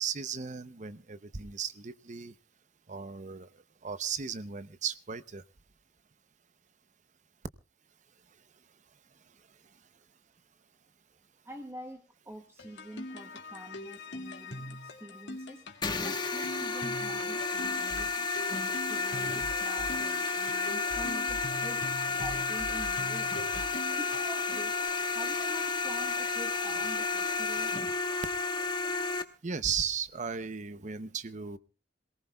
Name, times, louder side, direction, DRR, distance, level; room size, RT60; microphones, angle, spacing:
voice 1, 0.0-2.3 2.9-3.5 3.8-5.4 29.4-31.6, right 7 dB, 45° right, 14 dB, 0.8 m, -36 dB
voice 2, 11.4-15.7 16.0-18.3 18.7-23.5 23.8-27.7, equal, 15° right, 6 dB, 1.1 m, -46 dB
sound 1, 12.6-24.9, left 1 dB, 90° left, 2.1 m, -43 dB
sound 2, 15.8-29.2, left 4 dB, 25° left, 1.2 m, -32 dB
sound 3, 17.9-18.1 18.6-18.7 19.2-20.2 20.7-21.9 22.2-23.2 23.5-23.8, equal, 80° right, 5.0 m, -44 dB
27.0 x 18.5 x 2.3 m, 0.35 s
head